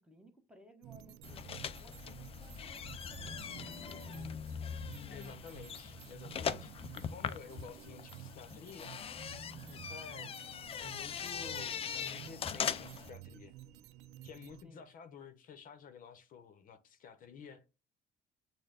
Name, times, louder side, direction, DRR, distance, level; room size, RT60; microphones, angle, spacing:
voice 1, 0.0-4.4 5.1-5.4 5.8-5.9 6.8-6.9 10.0-10.3 14.6-14.9, equal, 5° right, 1.2 m, -61 dB
sound 1, 0.8-14.6, right 11 dB, 80° right, 0.4 m, -52 dB
sound 2, 1.2-13.1, left 7 dB, 35° left, 0.4 m, -41 dB
voice 2, 5.1-9.0 9.7-10.3 10.8-13.5 14.2-17.6, left 6 dB, 55° left, 0.8 m, -52 dB
6.6 x 2.2 x 3.7 m
cardioid pair, 110°, 17 cm